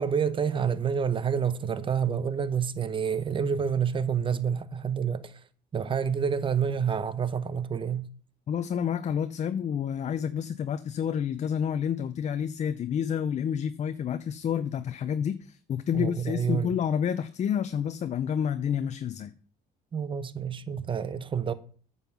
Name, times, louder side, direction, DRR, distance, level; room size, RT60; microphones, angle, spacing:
voice 1, 0.0-5.4 5.7-8.1 15.9-16.7 19.9-21.5, right 7 dB, 30° right, 0.8 m, -28 dB
voice 2, 8.5-19.3, left 8 dB, 45° left, 0.6 m, -29 dB
9.0 x 5.6 x 7.1 m
cardioid pair, 110°, 17 cm